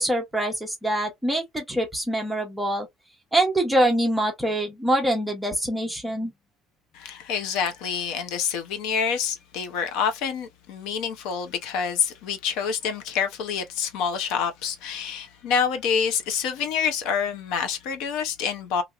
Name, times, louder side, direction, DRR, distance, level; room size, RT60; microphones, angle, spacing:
voice 1, 0.0-2.9 3.3-6.3, right 1 dB, 5° right, 0.8 m, -24 dB
voice 2, 6.9-18.8, left 6 dB, 70° left, 0.6 m, -27 dB
2.9 x 2.8 x 2.4 m
cardioid pair, 175°, 0 cm